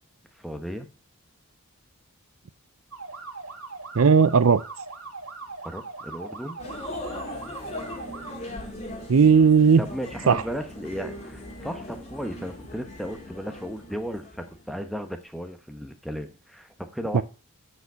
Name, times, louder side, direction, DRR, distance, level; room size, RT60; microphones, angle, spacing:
voice 1, 0.4-0.9 5.6-6.5 9.8-17.2, equal, ahead, 7 dB, 1.0 m, -35 dB
sound 1, 2.9-8.3, right 4 dB, 85° right, 2.1 m, -40 dB
voice 2, 4.0-4.6 9.1-9.8 10.3-10.4 17.1-17.2, right 6 dB, 65° right, 16 dB, 0.5 m, -16 dB
sound 2, 6.6-14.9, left 1 dB, 30° left, 2.2 m, -39 dB
9.9 x 5.2 x 6.9 m, 0.33 s
head